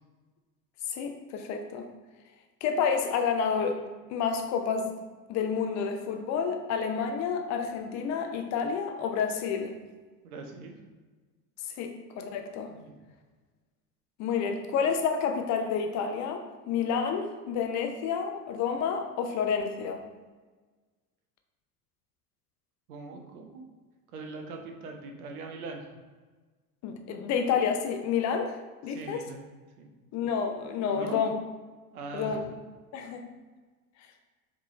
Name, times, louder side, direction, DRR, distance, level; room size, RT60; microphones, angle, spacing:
voice 1, 0.9-1.9 2.6-3.8 4.1-4.9 5.3-9.7 11.8-12.7 14.2-20.0 26.8-28.5 28.8-29.3 30.1-31.3 32.1-32.4 32.9-33.2, left 6 dB, 35° left, 5 dB, 0.6 m, -29 dB
voice 2, 10.2-10.8 12.7-12.9 22.9-23.6 24.1-25.9 28.9-29.4 29.8-29.9 30.9-31.2 31.9-32.4, right 3 dB, 65° right, 2 dB, 0.9 m, -41 dB
5.1 x 3.3 x 3.0 m, 1.3 s
figure-of-eight pair, 70°, 47 cm